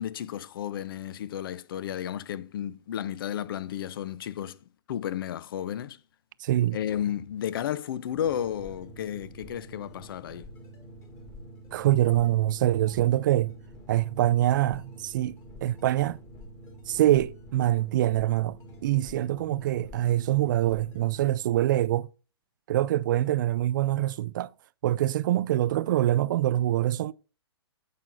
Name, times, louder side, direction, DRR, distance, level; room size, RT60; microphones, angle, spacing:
voice 1, 0.0-4.6 4.9-6.0 6.7-10.5, left 10 dB, 55° left, 0.6 m, -33 dB
voice 2, 6.4-6.8 11.7-13.5 13.9-15.4 15.6-16.2 16.9-18.6 18.8-22.1 22.7-24.5 24.8-27.1, right 13 dB, 45° right, 0.4 m, -24 dB
sound 1, 8.1-21.4, equal, 20° left, 1.9 m, -47 dB
10.5 x 7.6 x 2.5 m
hypercardioid pair, 150°, 14 cm